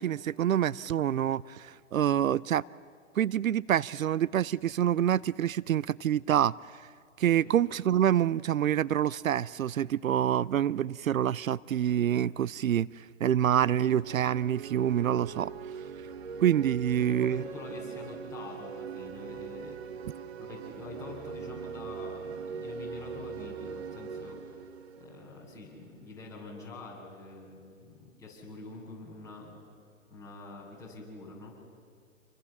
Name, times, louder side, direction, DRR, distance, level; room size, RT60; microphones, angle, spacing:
voice 1, 0.0-2.6 3.2-6.5 7.2-15.5 16.4-17.4, right 10 dB, 80° right, 21 dB, 0.6 m, -27 dB
sound 1, 13.3-26.0, right 6 dB, 50° right, 1.7 m, -41 dB
voice 2, 17.0-19.8 20.4-24.7 25.0-29.7 30.1-31.6, left 3 dB, 5° left, -5 dB, 7.6 m, -45 dB
28.0 x 23.5 x 7.3 m, 2.2 s
hypercardioid pair, 140°, 40 cm